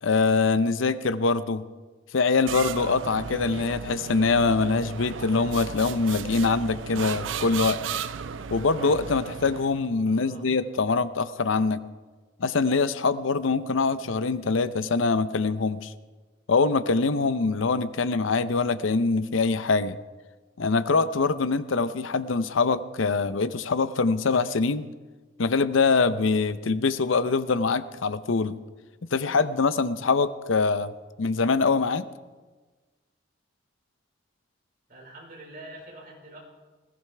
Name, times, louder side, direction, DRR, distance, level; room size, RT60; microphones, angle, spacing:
voice 1, 0.0-1.6 2.1-7.8 8.5-11.8 12.4-15.9 16.5-20.0 20.6-24.9 25.4-28.6 29.1-30.9 31.2-32.0, left 4 dB, 80° left, 14 dB, 0.6 m, -24 dB
sound 1, 2.5-9.9, right 7 dB, 70° right, 0.5 m, -35 dB
voice 2, 10.0-10.6 34.9-36.4, right 1 dB, 45° right, -3 dB, 4.9 m, -45 dB
20.5 x 14.5 x 3.4 m, 1.3 s
head